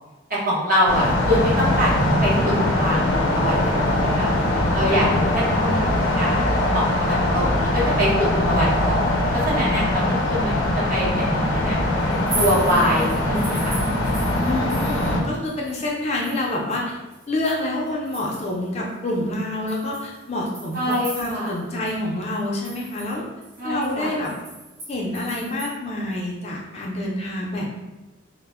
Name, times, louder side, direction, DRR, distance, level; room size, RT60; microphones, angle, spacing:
voice 1, 0.3-1.9 2.2-3.6 4.0-4.3 4.7-6.5 6.7-9.1 9.4-11.8 12.3-14.3 20.7-21.5 23.6-24.1, equal, 45° right, -6 dB, 0.8 m, -24 dB
sound 1, 0.9-15.2, left 1 dB, 85° left, 0.5 m, -21 dB
voice 2, 4.9-5.2 14.4-17.0 17.3-23.3 23.6-24.3 24.9-27.7, left 1 dB, 35° left, -2 dB, 0.4 m, -27 dB
sound 2, 12.1-15.2 15.4-18.6 19.1-19.2 19.7-21.6 21.9-22.0 22.3-25.7, right 2 dB, 85° right, 1.0 m, -37 dB
2.1 x 2.0 x 3.4 m, 1.1 s
head